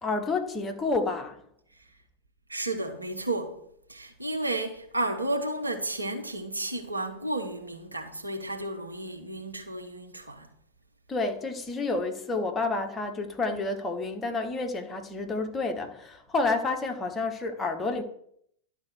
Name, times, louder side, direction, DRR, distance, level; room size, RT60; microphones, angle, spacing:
voice 1, 0.0-1.4 11.1-18.0, left 3 dB, 15° left, 1.6 m, -29 dB
voice 2, 2.5-3.6 3.9-10.5, right 2 dB, 85° right, 1.3 m, -32 dB
11.5 x 4.6 x 8.0 m
figure-of-eight pair, 90°, 0 cm